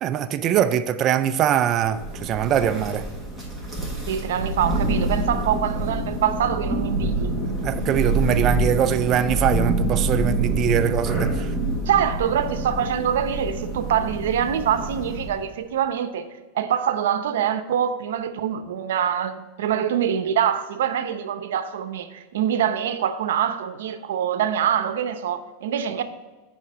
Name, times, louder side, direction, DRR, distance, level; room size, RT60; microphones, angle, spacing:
voice 1, 0.0-3.1 7.5-11.5, right 10 dB, 30° right, 0.4 m, -22 dB
Thunder, 1.8-15.5, right 2 dB, 5° left, 1.5 m, -26 dB
voice 2, 4.1-7.3 11.8-16.3 16.5-26.0, right 9 dB, 85° right, 0.7 m, -24 dB
7.2 x 5.0 x 6.1 m
supercardioid pair, 155°, 0 cm